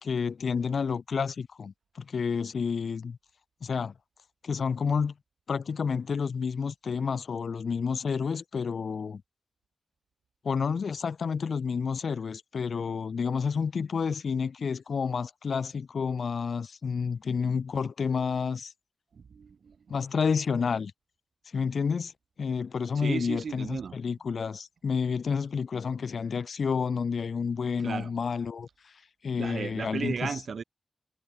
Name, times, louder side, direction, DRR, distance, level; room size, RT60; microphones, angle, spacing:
voice 1, 0.0-3.2 3.6-3.9 4.4-5.1 5.5-9.2 10.4-18.7 19.9-20.9 21.5-22.1 22.4-28.7 29.2-30.4, left 6 dB, 75° left, 1.9 m, -30 dB
voice 2, 19.1-19.9 23.0-24.0 27.8-28.1 29.4-30.6, right 6 dB, 80° right, 1.9 m, -35 dB
wide cardioid pair, 160°, 0 cm